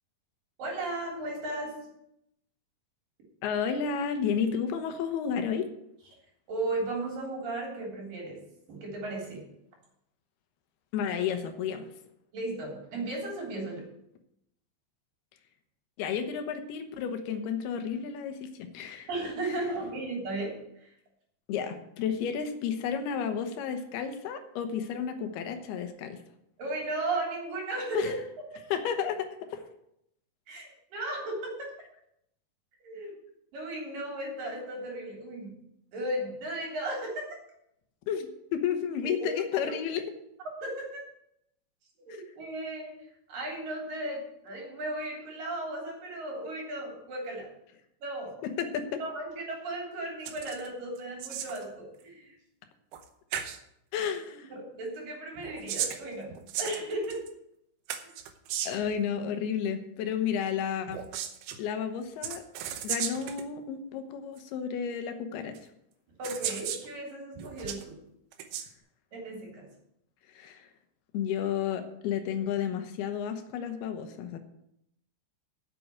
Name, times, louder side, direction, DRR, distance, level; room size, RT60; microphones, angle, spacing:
voice 1, 0.6-1.7 6.5-8.4 8.7-9.4 12.3-13.8 19.1-20.5 20.8-20.9 26.6-28.1 30.5-31.7 32.8-33.1 33.5-35.6 35.9-37.2 39.2-39.6 40.6-41.0 42.0-42.9 43.3-47.5 48.0-48.4 49.0-52.4 54.5-56.3 56.6-57.2 66.2-68.0 69.1-69.7, right 2 dB, 60° right, -2 dB, 5.0 m, -35 dB
voice 2, 3.4-5.7 10.9-11.8 16.0-19.1 19.4-19.6 21.5-26.2 27.9-28.1 28.7-29.6 38.1-40.0 48.4-49.0 53.9-54.5 58.7-61.0 61.6-62.4 62.8-65.7 70.3-70.7 71.1-74.4, left 7 dB, 90° left, 7 dB, 3.1 m, -32 dB
sound 1, 50.3-50.7 51.0-51.7 52.9-53.1 53.3-53.6 55.4-57.3 57.9-58.9 60.9-61.6 62.2-63.5 64.4-64.5 65.6-65.7 66.2-66.9 67.4-67.8 68.3-68.7, right 9 dB, 80° right, 2.8 m, -35 dB
8.0 x 7.9 x 8.8 m, 0.78 s
omnidirectional pair, 4.4 m